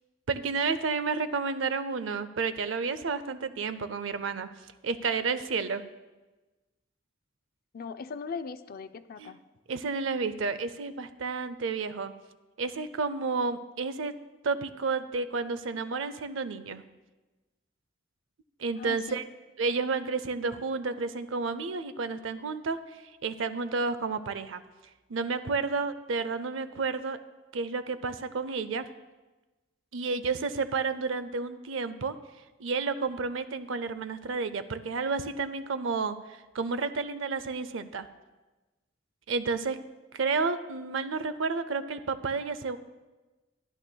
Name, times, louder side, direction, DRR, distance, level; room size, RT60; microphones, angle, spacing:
voice 1, 0.3-4.5 4.8-5.8 9.2-9.3 9.7-12.1 12.6-14.1 14.4-16.8 18.6-19.2 19.6-24.6 25.1-27.2 27.5-28.9 29.9-32.2 32.6-38.1 39.3-39.8 40.1-42.8, right 4 dB, 70° right, 12 dB, 0.5 m, -31 dB
voice 2, 7.7-9.4 18.8-19.2, left 5 dB, 50° left, 11 dB, 0.4 m, -39 dB
14.0 x 10.5 x 2.3 m, 1.2 s
head